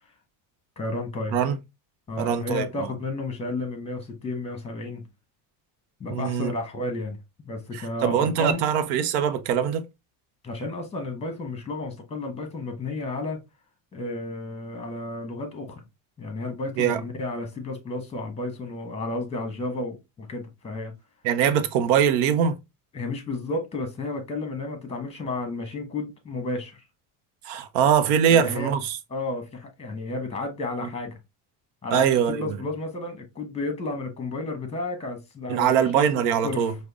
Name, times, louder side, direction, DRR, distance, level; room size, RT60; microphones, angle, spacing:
voice 1, 0.8-1.4 2.1-5.0 6.0-8.7 10.4-13.4 13.9-15.8 16.2-20.9 22.9-26.8 28.2-28.7 29.1-31.2 31.8-35.8 36.1-36.7, left 2 dB, 15° left, 1.0 m, -32 dB
voice 2, 2.2-2.9 6.1-6.5 7.7-9.9 16.8-17.0 21.2-22.6 27.4-29.0 31.9-32.6 35.5-36.7, right 8 dB, 90° right, 0.7 m, -22 dB
5.0 x 2.2 x 2.3 m
cardioid pair, 115°, 44 cm